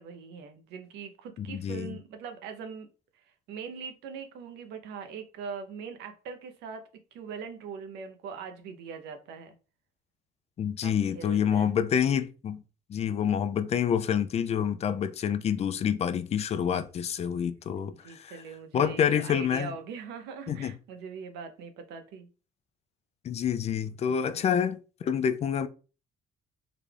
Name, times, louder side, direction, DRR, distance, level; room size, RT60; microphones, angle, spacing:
voice 1, 0.0-2.9 3.1-9.6 10.8-11.7 18.0-22.3 24.3-24.5, right 6 dB, 85° right, 0.7 m, -41 dB
voice 2, 1.4-1.9 10.6-12.6 12.9-18.4 18.7-19.7 20.5-20.7 23.2-25.7, left 8 dB, 40° left, 0.4 m, -27 dB
3.8 x 2.3 x 3.3 m
cardioid pair, 110°, 17 cm